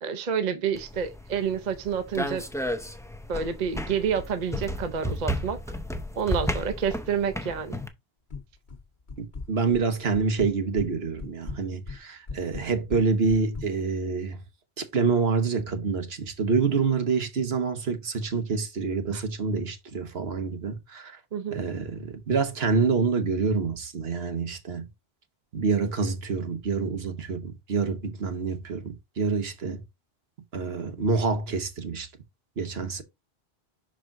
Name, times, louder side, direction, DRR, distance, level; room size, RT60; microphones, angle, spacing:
voice 1, 0.0-2.4 3.3-5.6 6.2-7.8 19.1-19.2 21.3-21.6, right 7 dB, 45° right, 0.8 m, -29 dB
sound 1, 0.7-7.9, equal, 5° left, 0.5 m, -33 dB
sound 2, 8.3-8.8 9.1-9.8 10.1-10.9 11.2-13.7, left 4 dB, 50° left, 1.3 m, -37 dB
voice 2, 9.5-14.4 14.8-21.2 21.5-24.9 25.5-29.8 30.5-32.1 32.6-33.0, right 4 dB, 75° right, 1.3 m, -27 dB
5.8 x 4.9 x 3.6 m
omnidirectional pair, 1.1 m